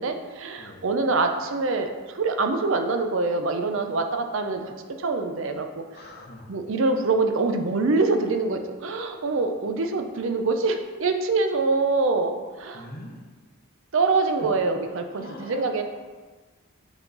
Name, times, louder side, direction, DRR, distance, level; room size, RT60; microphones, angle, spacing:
voice 1, 0.0-4.7 5.0-5.8 6.5-12.9 13.9-15.8, right 3 dB, 65° right, 6 dB, 0.5 m, -25 dB
voice 2, 5.9-6.5 12.7-13.2 14.3-14.5 15.1-15.8, left 1 dB, 45° left, 2 dB, 0.8 m, -42 dB
7.1 x 3.8 x 3.9 m, 1.3 s
head